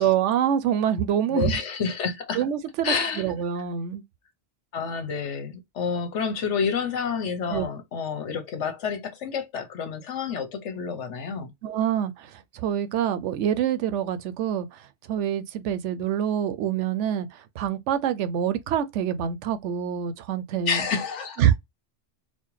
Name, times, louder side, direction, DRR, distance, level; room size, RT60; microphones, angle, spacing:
voice 1, 0.0-1.5 2.3-4.0 7.5-7.6 11.6-14.7 15.1-17.3 17.6-20.8 21.4-21.6, right 9 dB, 80° right, 0.9 m, -25 dB
voice 2, 1.3-2.4 2.8-3.3 4.7-11.5 20.7-21.6, left 6 dB, 75° left, 1.2 m, -29 dB
4.2 x 2.1 x 3.0 m
omnidirectional pair, 1.2 m